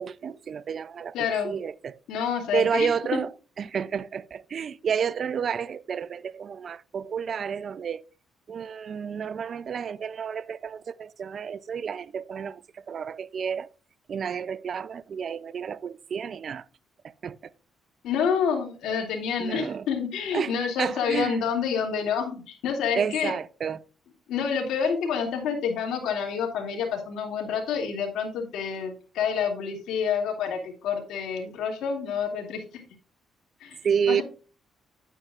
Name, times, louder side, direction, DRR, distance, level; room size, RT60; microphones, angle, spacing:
voice 1, 0.0-1.2 1.4-2.0 2.5-3.3 3.6-8.0 8.5-13.7 14.1-16.6 17.0-17.5 19.4-19.9 20.3-20.5 20.8-21.4 22.9-23.8 33.8-34.2, right 7 dB, 50° right, 0.4 m, -30 dB
voice 2, 1.1-1.5 2.1-2.9 18.0-23.3 24.3-32.8 33.6-33.8 34.1-34.2, left 6 dB, 85° left, 2.5 m, -28 dB
9.7 x 8.9 x 2.5 m
cardioid pair, 90°, 0 cm